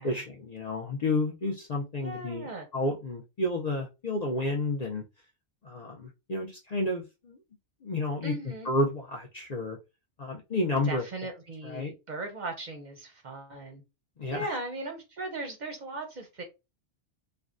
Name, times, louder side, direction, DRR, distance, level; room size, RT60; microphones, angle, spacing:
voice 1, 0.0-5.0 5.6-7.4 7.8-8.3 8.6-9.8 10.2-11.0 11.6-11.9 14.2-14.6, left 2 dB, 45° left, 0.6 m, -31 dB
voice 2, 2.0-2.7 8.2-8.7 10.8-13.8 14.3-16.4, right 2 dB, 50° right, 0.7 m, -38 dB
3.3 x 2.1 x 2.4 m
omnidirectional pair, 1.2 m